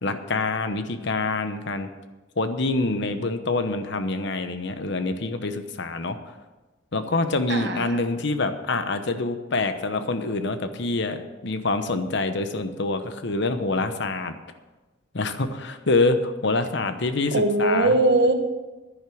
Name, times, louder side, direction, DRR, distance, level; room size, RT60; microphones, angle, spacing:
voice 1, 0.0-1.9 2.4-6.2 6.9-14.3 15.1-17.3 17.6-17.9, left 3 dB, 60° left, 9 dB, 1.0 m, -26 dB
voice 2, 7.5-8.0 17.3-18.3, right 2 dB, 55° right, 6 dB, 1.4 m, -20 dB
10.5 x 10.0 x 6.3 m, 1.2 s
head